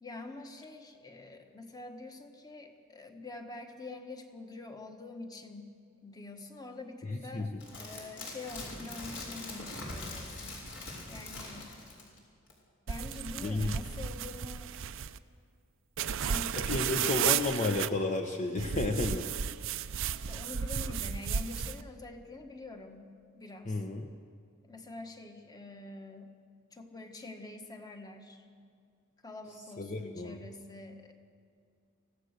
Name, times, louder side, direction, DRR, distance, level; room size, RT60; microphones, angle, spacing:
voice 1, 0.0-5.7 6.0-7.5 7.7-10.8 11.1-11.7 12.9-14.7 16.0-17.1 20.3-23.8 24.6-26.3 26.7-28.4 29.2-31.1, left 2 dB, 20° left, 5 dB, 1.5 m, -46 dB
voice 2, 7.0-7.6 13.4-13.7 16.6-19.3 23.7-24.1 29.8-30.4, left 2 dB, 35° left, 3 dB, 1.0 m, -32 dB
sound 1, 7.6-12.2 12.5-12.6, left 2 dB, 60° left, 5.0 m, -42 dB
sound 2, 12.9-15.2 16.0-17.9 18.6-21.8, right 8 dB, 65° right, 0.6 m, -33 dB
24.0 x 16.0 x 6.7 m, 2.2 s
head